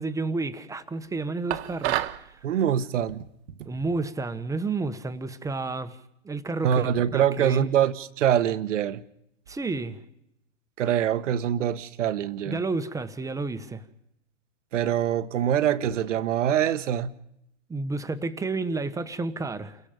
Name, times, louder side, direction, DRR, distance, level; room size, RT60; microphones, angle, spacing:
voice 1, 0.0-2.3 3.6-6.0 6.2-7.7 9.5-10.0 12.4-13.8 17.7-19.8, right 3 dB, 10° right, 1.4 m, -31 dB
sound 1, 1.5-2.2, right 14 dB, 55° right, 1.7 m, -28 dB
voice 2, 2.4-3.2 6.6-9.0 10.8-12.6 14.7-17.1, right 9 dB, 70° right, 1.6 m, -24 dB
29.5 x 23.0 x 5.3 m
hypercardioid pair, 125°, 38 cm